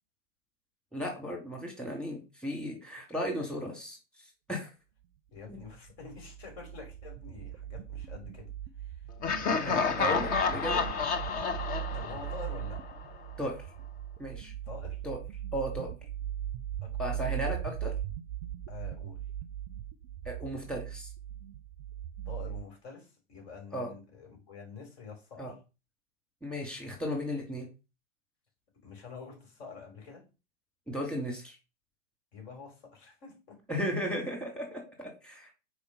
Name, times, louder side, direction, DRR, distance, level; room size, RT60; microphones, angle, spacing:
voice 1, 0.9-4.0 4.5-4.7 5.5-5.6 9.6-10.8 13.4-13.6 14.2-14.5 15.0-15.2 15.5-15.9 17.0-17.9 20.2-21.1 23.7-23.9 25.4-25.5 26.4-27.7 30.9-31.6 33.7-35.5, equal, ahead, 2.6 m, -35 dB
voice 2, 5.3-8.5 8.8-9.1 11.9-12.9 14.6-15.0 16.8-17.4 18.7-19.3 22.3-25.5 28.8-30.2 32.3-33.6, left 5 dB, 50° left, 5.6 m, -47 dB
sound 1, 5.5-22.6, right 11 dB, 45° right, 0.6 m, -39 dB
Laughter, 9.2-13.1, left 5 dB, 20° left, 0.8 m, -30 dB
6.9 x 4.9 x 5.4 m
figure-of-eight pair, 110°, 39 cm